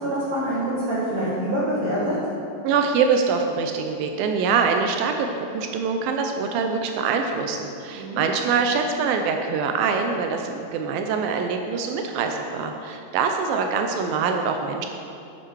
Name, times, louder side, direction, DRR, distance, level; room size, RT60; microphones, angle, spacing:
voice 1, 0.0-2.1 7.9-8.2, right 1 dB, 55° right, -8 dB, 1.6 m, -25 dB
voice 2, 2.6-14.9, right 5 dB, 85° right, 4 dB, 2.1 m, -24 dB
8.7 x 7.4 x 4.6 m, 2.6 s
omnidirectional pair, 4.6 m